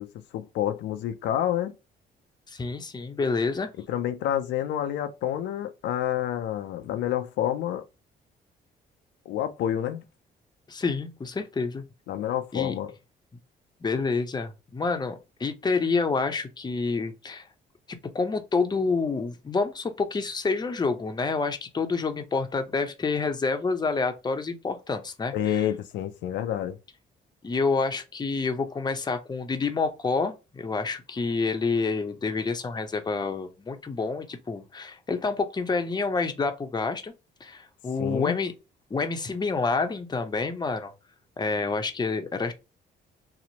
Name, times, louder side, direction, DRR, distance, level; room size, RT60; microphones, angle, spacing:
voice 1, 0.0-1.7 3.9-7.8 9.3-10.0 12.1-12.9 25.3-26.8 38.0-38.4, left 11 dB, 80° left, 0.4 m, -28 dB
voice 2, 2.5-3.7 10.7-11.8 12.5-12.7 13.8-17.5 18.1-25.7 27.4-37.1 37.4-38.5 38.9-40.9 41.4-42.5, left 4 dB, 25° left, 0.6 m, -28 dB
2.9 x 2.0 x 2.7 m
cardioid pair, 70°, 19 cm